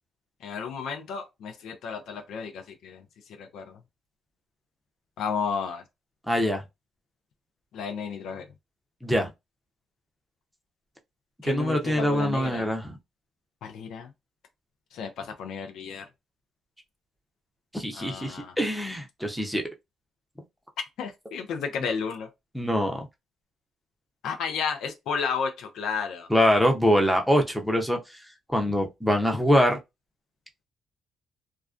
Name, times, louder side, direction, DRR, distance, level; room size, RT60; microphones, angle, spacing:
voice 1, 0.4-3.0 3.4-3.8 5.2-5.8 7.7-8.5 11.4-12.7 13.6-14.1 14.9-16.1 17.9-18.5 21.0-22.3 24.2-26.3, left 6 dB, 75° left, 0.5 m, -32 dB
voice 2, 6.3-6.6 9.0-9.3 11.4-12.9 17.7-19.6 22.5-23.1 26.3-28.2 28.5-29.8, equal, ahead, 0.7 m, -24 dB
2.3 x 2.2 x 2.4 m
supercardioid pair, 70°, 0 cm